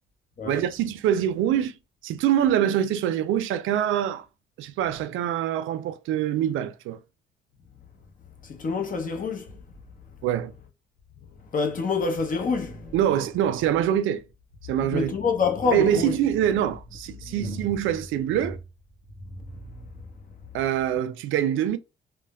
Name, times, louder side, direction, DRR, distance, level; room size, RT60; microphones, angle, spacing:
voice 1, 0.5-1.8 2.0-4.3 4.6-7.0 10.2-10.5 12.9-14.2 14.7-15.1 15.7-18.6 20.5-21.8, right 10 dB, 85° right, 0.4 m, -24 dB
voice 2, 8.4-9.6 10.1-10.2 11.2-13.0 14.8-16.2 17.2-17.5 19.5-19.9, left 5 dB, 45° left, 0.8 m, -28 dB
3.1 x 2.1 x 2.2 m
cardioid pair, 90°, 20 cm